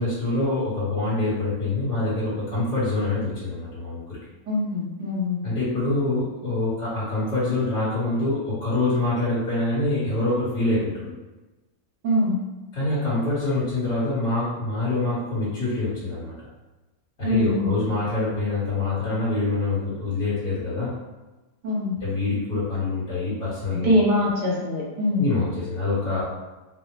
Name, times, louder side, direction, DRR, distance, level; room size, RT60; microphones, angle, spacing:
voice 1, 0.0-4.2 5.4-11.1 12.7-16.5 17.2-20.9 22.0-23.9 25.2-26.2, left 2 dB, 60° left, -13 dB, 2.0 m, -25 dB
voice 2, 4.5-5.4 12.0-12.4 17.2-17.7 21.6-22.0 23.7-25.3, left 1 dB, 85° right, -5 dB, 1.7 m, -23 dB
5.4 x 2.1 x 3.1 m, 1.1 s
omnidirectional pair, 1.7 m